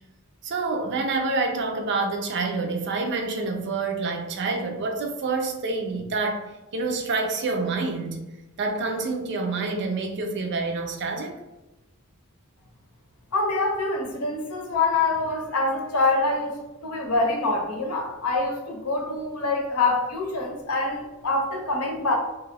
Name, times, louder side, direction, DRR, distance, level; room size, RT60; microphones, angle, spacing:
voice 1, 0.4-8.2 8.6-11.4, right 3 dB, 55° right, 3 dB, 0.5 m, -27 dB
voice 2, 13.3-22.1, left 3 dB, 75° left, 2 dB, 0.7 m, -25 dB
2.9 x 2.3 x 3.3 m, 1.0 s
head